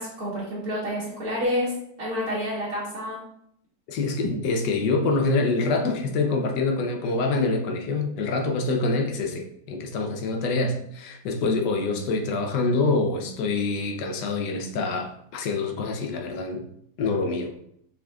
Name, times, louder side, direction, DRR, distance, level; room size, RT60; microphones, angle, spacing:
voice 1, 0.0-1.7 2.0-3.2 4.2-4.3, equal, 65° right, -7 dB, 1.8 m, -28 dB
voice 2, 3.9-16.6 17.0-17.5, left 3 dB, 90° left, 3 dB, 1.4 m, -26 dB
6.1 x 3.6 x 2.3 m, 0.71 s
omnidirectional pair, 1.8 m